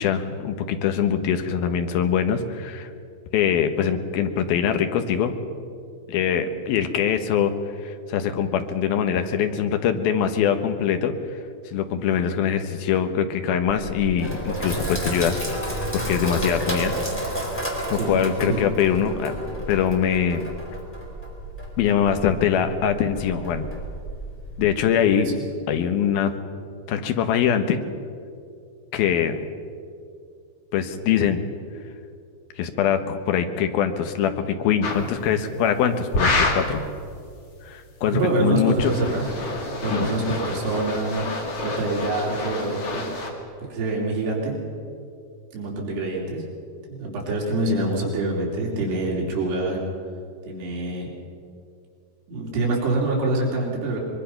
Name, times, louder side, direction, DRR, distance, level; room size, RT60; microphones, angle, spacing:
voice 1, 0.0-2.9 3.3-5.3 6.1-7.5 7.8-11.1 11.7-15.4 15.9-16.9 17.4-17.5 17.9-20.5 21.8-23.7 24.6-25.3 25.7-26.3 26.9-27.8 28.9-29.4 30.7-31.4 32.6-36.8 37.6-38.9 39.9-40.1, left 8 dB, 70° left, 7 dB, 2.8 m, -23 dB
Sink (filling or washing), 13.7-24.7, right 1 dB, 5° left, 3.7 m, -31 dB
sound 1, 34.8-35.1 36.1-36.7 38.6-43.3, left 2 dB, 40° left, 3.0 m, -27 dB
voice 2, 38.0-39.3 39.8-41.3 41.6-43.1 43.6-44.6 45.5-46.4 46.9-49.8 50.5-51.1 52.3-54.0, right 2 dB, 75° right, -3 dB, 5.3 m, -25 dB
23.5 x 22.5 x 5.8 m, 2.4 s
omnidirectional pair, 4.8 m